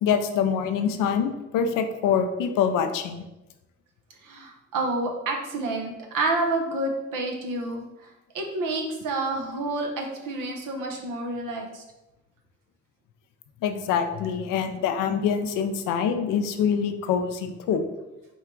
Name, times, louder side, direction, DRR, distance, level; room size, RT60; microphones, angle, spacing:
voice 1, 0.0-3.2 13.6-17.8, left 7 dB, 90° left, 7 dB, 0.5 m, -25 dB
voice 2, 4.2-7.9 8.3-11.8, right 2 dB, 85° right, 2 dB, 0.8 m, -29 dB
4.4 x 2.4 x 4.5 m, 0.99 s
supercardioid pair, 50°, 31 cm